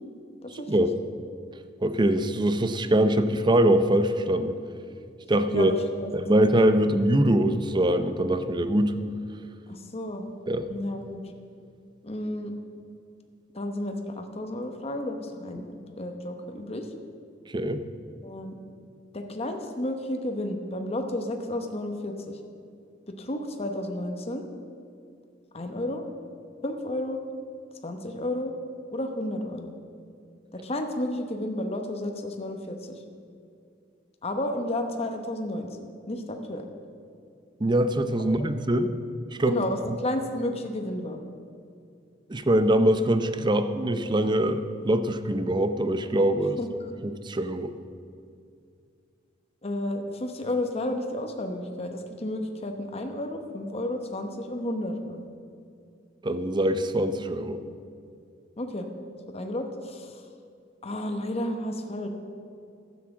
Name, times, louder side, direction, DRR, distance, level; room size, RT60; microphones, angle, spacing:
voice 1, 0.5-0.9 1.8-4.6 5.3-5.7 6.1-9.0 10.5-10.7 17.5-17.8 37.6-38.9 39.4-39.6 42.3-46.6 47.0-47.7 56.2-57.6, right 1 dB, 25° right, 10 dB, 0.6 m, -23 dB
voice 2, 9.7-10.2 10.7-11.2 12.0-12.5 13.5-15.7 16.0-16.9 18.2-18.5 19.1-22.1 23.2-24.4 25.5-26.0 26.6-27.2 27.8-28.5 28.9-29.7 30.5-33.0 34.2-35.7 36.1-36.6 38.4-38.5 39.5-41.2 46.6-46.7 49.6-55.3 58.6-58.9 59.3-60.2 60.8-62.1, left 1 dB, 35° left, 4 dB, 1.0 m, -32 dB
12.0 x 7.5 x 7.3 m, 2.3 s
head